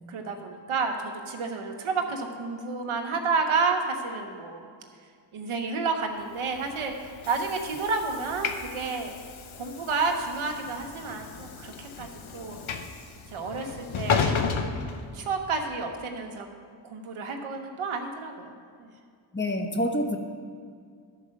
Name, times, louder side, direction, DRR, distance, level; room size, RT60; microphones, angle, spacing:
voice 1, 0.1-4.7 5.3-9.2 9.5-12.1 12.3-12.6 13.3-14.4 15.1-16.5 16.8-18.5 18.8-18.9, right 4 dB, 85° right, 3 dB, 1.1 m, -30 dB
Train / Sliding door, 6.4-15.7, left 5 dB, 80° left, 0.8 m, -33 dB
voice 2, 19.3-20.2, equal, 25° left, 3 dB, 1.2 m, -27 dB
12.0 x 5.0 x 6.3 m, 2.1 s
cardioid pair, 45°, 47 cm